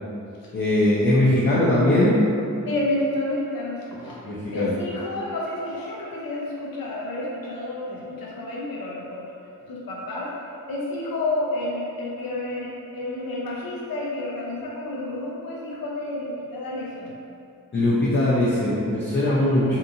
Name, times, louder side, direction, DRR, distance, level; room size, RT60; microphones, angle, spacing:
voice 1, 0.5-2.2 4.3-4.7 17.7-19.8, left 1 dB, 35° left, -8 dB, 0.5 m, -20 dB
voice 2, 2.6-4.2 4.5-9.3 9.7-10.3 10.7-17.1, left 2 dB, 75° left, -5 dB, 0.7 m, -30 dB
2.7 x 2.4 x 2.6 m, 2.6 s
wide cardioid pair, 80°, 35 cm